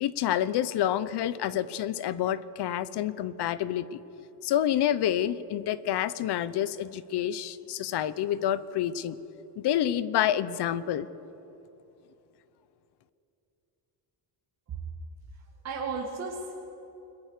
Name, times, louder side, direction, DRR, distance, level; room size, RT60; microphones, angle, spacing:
voice 1, 0.0-4.0 4.4-9.2 9.6-11.1, left 11 dB, 65° left, 16 dB, 0.9 m, -28 dB
voice 2, 15.3-16.5, right 4 dB, 35° right, -2 dB, 2.3 m, -35 dB
29.5 x 21.5 x 6.7 m, 3.0 s
cardioid pair, 180°, 42 cm